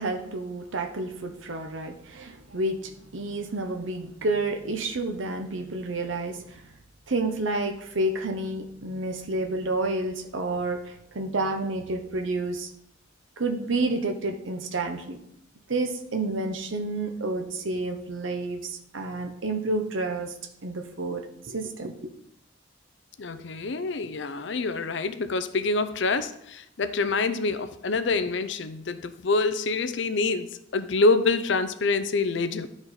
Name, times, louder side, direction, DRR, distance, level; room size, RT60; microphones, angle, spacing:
voice 1, 0.0-6.6 7.1-12.7 13.4-15.2 15.7-20.3 20.6-21.9, right 2 dB, 80° right, 5 dB, 0.9 m, -30 dB
voice 2, 23.2-32.7, left 3 dB, 65° left, 11 dB, 0.6 m, -26 dB
11.5 x 5.0 x 4.1 m, 0.76 s
head